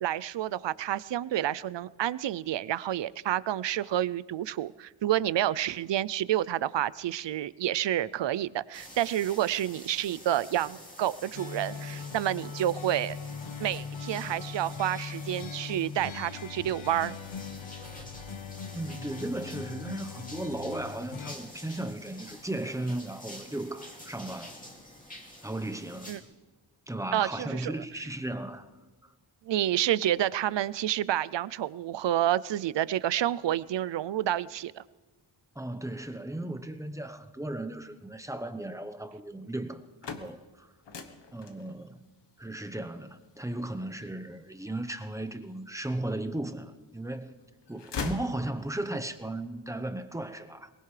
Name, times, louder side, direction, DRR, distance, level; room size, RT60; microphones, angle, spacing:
voice 1, 0.0-13.2 13.6-17.2 26.1-26.2 27.1-27.7 29.5-34.8, right 12 dB, 70° right, 19 dB, 0.5 m, -29 dB
sound 1, 8.7-26.2, left 1 dB, 15° left, 2.6 m, -48 dB
sound 2, 11.3-21.4, left 6 dB, 90° left, 1.0 m, -40 dB
voice 2, 18.7-24.6 25.4-26.2 26.9-28.7 29.0-29.1 35.5-39.8 40.2-40.7 41.3-42.0 42.4-47.3 47.7-50.7, right 1 dB, 5° right, 7 dB, 0.9 m, -36 dB
sound 3, 39.8-45.7 46.2-47.1 47.4-49.0, left 5 dB, 65° left, 1.2 m, -42 dB
22.5 x 19.5 x 3.3 m, 1.2 s
wide cardioid pair, 80°, 46 cm